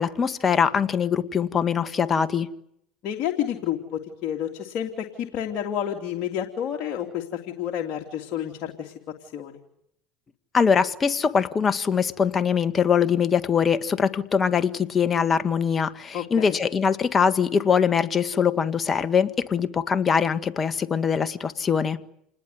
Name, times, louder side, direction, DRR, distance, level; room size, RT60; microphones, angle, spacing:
voice 1, 0.0-2.5 10.5-22.0, left 6 dB, 30° left, 11 dB, 1.7 m, -22 dB
voice 2, 3.0-8.9 9.3-9.6 16.1-16.6, left 10 dB, 60° left, 1 dB, 3.0 m, -30 dB
28.5 x 20.5 x 9.6 m, 0.76 s
supercardioid pair, 85°, 0 cm